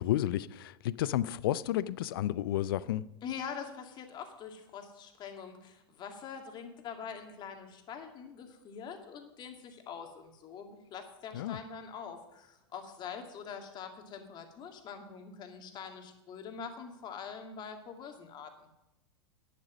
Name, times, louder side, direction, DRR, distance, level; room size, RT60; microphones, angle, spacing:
voice 1, 0.0-3.1 11.3-11.6, left 13 dB, 60° left, 0.5 m, -31 dB
voice 2, 3.2-18.7, left 7 dB, 30° left, 2.1 m, -44 dB
11.0 x 10.0 x 6.1 m
figure-of-eight pair, 90°, 14 cm